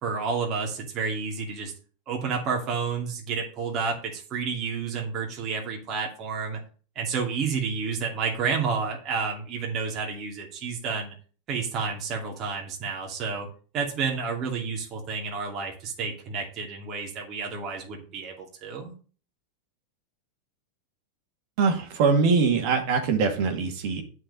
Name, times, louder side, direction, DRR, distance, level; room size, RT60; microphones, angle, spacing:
voice 1, 0.0-1.7 2.1-6.6 7.0-11.1 11.5-13.5 13.7-18.9, right 5 dB, 40° right, 0 dB, 2.6 m, -30 dB
voice 2, 21.6-24.0, right 5 dB, 60° right, 3 dB, 2.2 m, -23 dB
8.8 x 4.9 x 6.8 m, 0.39 s
hypercardioid pair, 110°, 0 cm